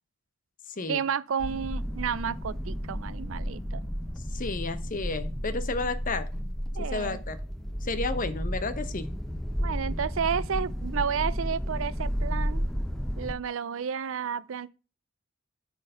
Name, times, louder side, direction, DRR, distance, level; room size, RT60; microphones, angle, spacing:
voice 1, 0.9-3.9 6.7-7.2 9.6-12.7 13.2-14.7, right 7 dB, 70° right, 0.4 m, -31 dB
sound 1, 1.4-13.3, equal, ahead, 0.8 m, -32 dB
voice 2, 4.3-6.3 6.8-7.4 7.8-9.1, left 3 dB, 40° left, 0.8 m, -32 dB
9.0 x 4.5 x 5.5 m
head